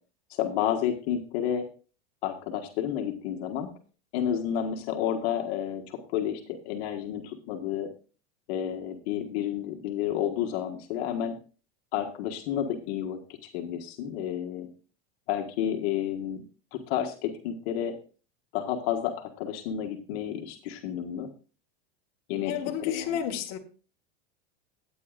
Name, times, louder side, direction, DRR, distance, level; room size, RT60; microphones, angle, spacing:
voice 1, 0.3-1.7 2.2-3.7 4.1-7.9 8.5-11.3 11.9-14.7 15.3-16.4 16.7-17.9 18.5-21.3 22.3-23.2, left 10 dB, 65° left, 4 dB, 1.6 m, -31 dB
voice 2, 22.5-23.6, left 9 dB, 50° left, 3 dB, 1.6 m, -31 dB
14.0 x 9.2 x 2.5 m, 0.36 s
supercardioid pair, 130°, 34 cm